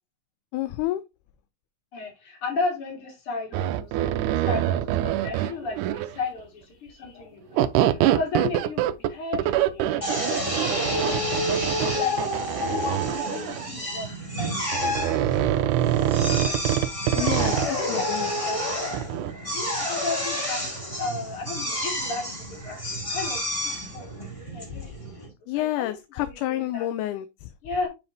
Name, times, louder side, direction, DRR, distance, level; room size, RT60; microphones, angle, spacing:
voice 1, 0.5-1.0 17.1-18.3 25.5-27.5, left 14 dB, 80° left, 2.0 m, -29 dB
voice 2, 1.9-11.3 11.6-12.2 12.7-14.5 14.8-16.7 17.1-18.6 19.5-20.7 21.0-25.3 25.5-26.9 27.6-27.9, left 3 dB, 45° left, 3.2 m, -35 dB
sound 1, 3.5-6.2 7.6-13.7 14.7-17.7 18.9-19.3, right 12 dB, 80° right, 2.1 m, -25 dB
Drill, 10.0-25.3, equal, 10° left, 2.1 m, -30 dB
7.3 x 5.7 x 2.6 m
omnidirectional pair, 3.7 m